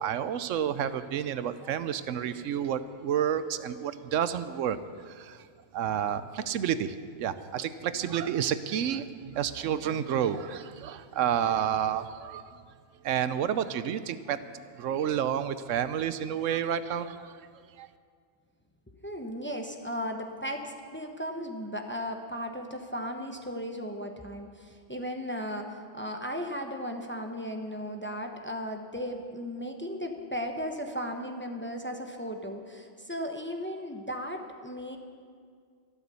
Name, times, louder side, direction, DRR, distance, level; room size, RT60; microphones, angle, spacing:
voice 1, 0.0-4.8 5.0-5.5 5.7-12.6 13.0-17.5 17.8-17.9, right 9 dB, 90° right, 13 dB, 1.0 m, -30 dB
voice 2, 18.9-35.0, equal, 10° left, 4 dB, 0.9 m, -36 dB
13.0 x 12.0 x 6.9 m, 2.1 s
omnidirectional pair, 1.3 m